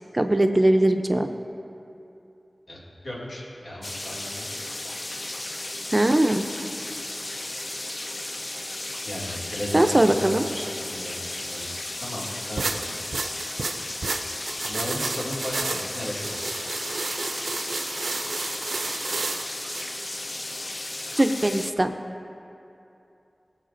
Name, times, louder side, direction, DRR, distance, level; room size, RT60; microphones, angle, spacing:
voice 1, 0.1-1.3 5.9-6.4 9.7-10.4 21.2-21.9, right 1 dB, 30° right, 6 dB, 0.5 m, -20 dB
voice 2, 2.7-4.5 9.1-11.6 12.0-12.9 14.7-16.6, left 1 dB, 70° left, -6 dB, 2.2 m, -35 dB
sound 1, 3.8-21.7, left 1 dB, 40° left, 0.4 m, -34 dB
sound 2, 12.6-19.8, right 3 dB, 90° right, 0.4 m, -31 dB
18.5 x 7.2 x 2.6 m, 2.8 s
wide cardioid pair, 50°, 0 cm